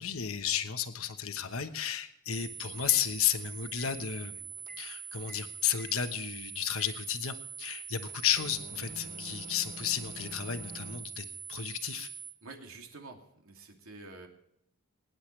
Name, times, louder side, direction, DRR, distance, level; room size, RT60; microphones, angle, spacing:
voice 1, 0.0-4.4 4.8-12.1, left 9 dB, 75° left, 8 dB, 1.1 m, -33 dB
sound 1, 2.3-12.3, right 7 dB, 10° right, 1.3 m, -44 dB
sound 2, 2.9-3.1 3.7-4.9 5.2-6.0 6.8-7.0 8.1-11.0, equal, 40° right, 2.7 m, -49 dB
voice 2, 12.4-14.3, right 3 dB, 75° right, 2 dB, 2.6 m, -48 dB
22.5 x 10.5 x 3.3 m, 0.76 s
head